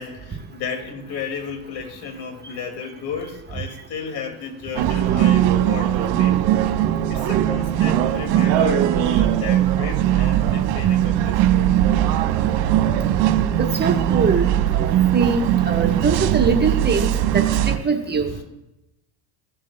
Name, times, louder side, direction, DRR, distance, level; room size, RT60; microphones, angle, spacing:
voice 1, 0.0-6.4 7.1-11.9 15.4-15.5 16.9-17.1, left 6 dB, 55° left, 4 dB, 2.3 m, -33 dB
sound 1, 4.8-17.8, right 11 dB, 65° right, 1.0 m, -19 dB
voice 2, 13.6-14.4 14.7-18.3, right 5 dB, 20° right, 3 dB, 1.2 m, -22 dB
16.5 x 7.3 x 2.2 m, 0.92 s
supercardioid pair, 95°, 45 cm